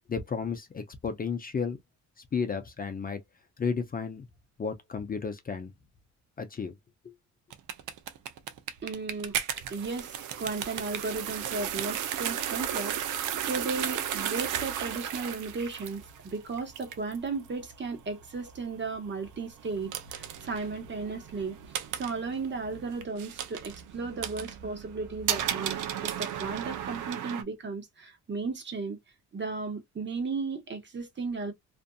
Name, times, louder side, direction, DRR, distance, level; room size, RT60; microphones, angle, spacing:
voice 1, 0.0-1.8 2.3-3.2 3.6-4.3 4.6-5.7 6.4-6.8 7.0-7.1, left 5 dB, 30° left, 0.5 m, -33 dB
sound 1, 7.5-27.4, right 10 dB, 85° right, 0.6 m, -35 dB
voice 2, 8.8-9.4 9.7-21.6 21.9-25.8 26.0-29.0 29.3-31.5, right 4 dB, 40° right, 1.1 m, -35 dB
2.6 x 2.5 x 2.2 m
cardioid pair, 90°, 30 cm